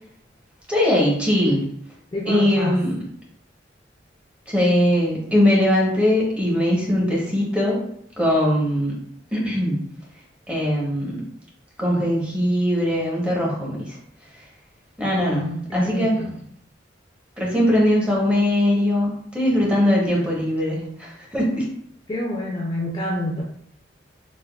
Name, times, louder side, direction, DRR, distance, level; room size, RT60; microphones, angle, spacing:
voice 1, 0.7-1.6 2.3-3.0 4.5-7.8 8.2-9.0 9.3-9.9 10.5-11.2 11.8-14.0 15.0-16.2 17.4-21.7, left 1 dB, 5° right, -4 dB, 0.8 m, -21 dB
voice 2, 2.1-2.8 15.2-16.4 22.1-23.4, left 1 dB, 25° left, -3 dB, 0.4 m, -28 dB
3.5 x 2.1 x 2.2 m, 0.67 s
head